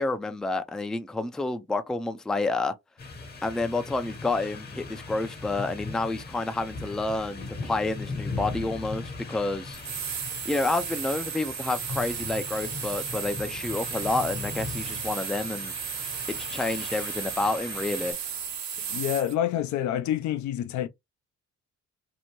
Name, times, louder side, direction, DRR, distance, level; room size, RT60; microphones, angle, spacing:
voice 1, 0.0-2.7 3.4-9.8 10.5-15.7 16.3-18.1, left 2 dB, ahead, 0.3 m, -29 dB
sound 1, 3.0-18.1, left 3 dB, 30° left, 0.8 m, -39 dB
sound 2, 9.7-19.3, right 8 dB, 60° right, 0.9 m, -35 dB
voice 2, 18.9-20.9, left 11 dB, 70° left, 0.5 m, -27 dB
2.8 x 2.1 x 2.9 m
cardioid pair, 90°, 30 cm